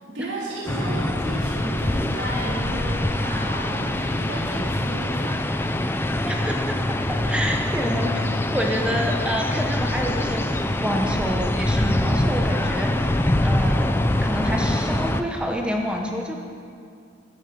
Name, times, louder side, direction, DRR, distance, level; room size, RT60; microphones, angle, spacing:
voice 1, 0.1-5.5, right 2 dB, 65° right, -8 dB, 3.9 m, -33 dB
sound 1, 0.7-15.2, left 1 dB, 10° left, 0.4 m, -24 dB
voice 2, 6.3-6.7 7.3-13.9 14.2-16.4, equal, 5° right, 0 dB, 0.9 m, -28 dB
14.5 x 11.0 x 5.3 m, 2.3 s
head